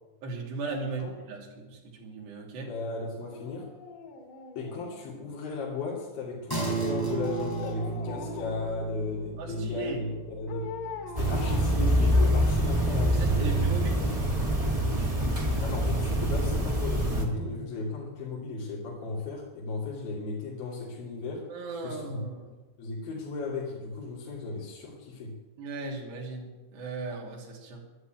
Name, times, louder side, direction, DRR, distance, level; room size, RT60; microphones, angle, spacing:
voice 1, 0.2-2.7 9.4-10.0 13.1-14.1 21.5-22.5 25.6-27.9, right 3 dB, 75° right, -2 dB, 4.9 m, -37 dB
voice 2, 2.6-3.7 4.6-10.7 11.2-13.6 15.6-21.5 21.8-22.2 22.8-25.4, left 3 dB, 60° left, -4 dB, 4.2 m, -35 dB
Dog, 3.3-5.4 7.0-8.7 10.5-12.6 12.9-13.0, left 5 dB, 80° left, 4.1 m, -42 dB
sound 1, 6.5-16.2, right 4 dB, 5° left, 3.6 m, -38 dB
sound 2, 11.1-17.2, equal, 25° right, 0.8 m, -25 dB
11.5 x 11.0 x 9.1 m, 1.1 s
omnidirectional pair, 4.9 m